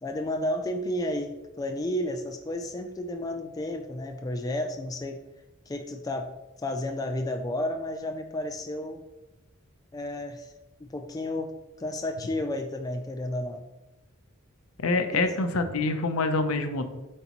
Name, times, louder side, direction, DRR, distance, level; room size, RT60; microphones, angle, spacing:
voice 1, 0.0-5.2 5.7-6.3 6.6-9.0 9.9-10.5 10.8-13.6 15.1-15.2, left 1 dB, 15° left, 4 dB, 0.3 m, -32 dB
voice 2, 14.8-16.8, left 3 dB, 70° left, 8 dB, 0.6 m, -26 dB
7.8 x 4.1 x 2.9 m, 1.1 s
head